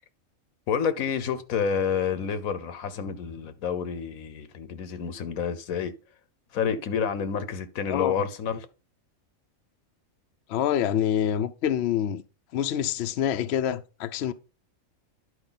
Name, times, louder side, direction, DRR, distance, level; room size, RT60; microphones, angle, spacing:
voice 1, 0.7-5.9 6.5-8.7, left 7 dB, 90° left, 1.3 m, -29 dB
voice 2, 10.5-12.2 12.5-14.3, left 10 dB, 60° left, 0.8 m, -26 dB
11.0 x 4.8 x 3.9 m
omnidirectional pair, 1.4 m